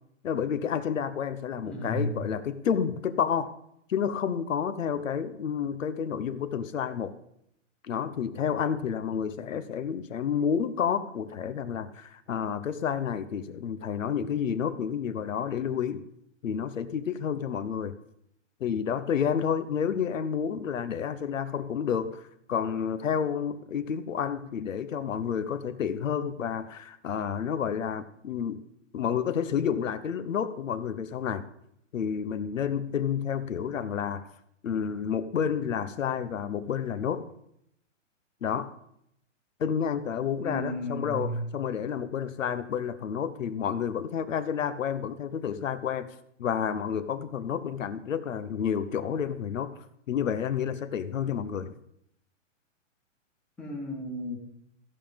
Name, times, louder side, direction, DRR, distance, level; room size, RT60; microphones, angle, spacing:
voice 1, 0.2-3.5 3.9-7.2 7.8-16.0 16.4-17.9 18.6-22.2 22.5-28.6 28.9-31.4 31.9-34.2 34.6-37.3 38.4-38.7 39.6-46.1 46.4-49.8 50.1-51.7, left 7 dB, 85° left, 12 dB, 1.0 m, -30 dB
voice 2, 1.7-2.2 40.4-41.4 53.6-54.4, equal, 5° left, -3 dB, 1.2 m, -33 dB
15.0 x 5.5 x 5.2 m, 0.77 s
hypercardioid pair, 170°, 38 cm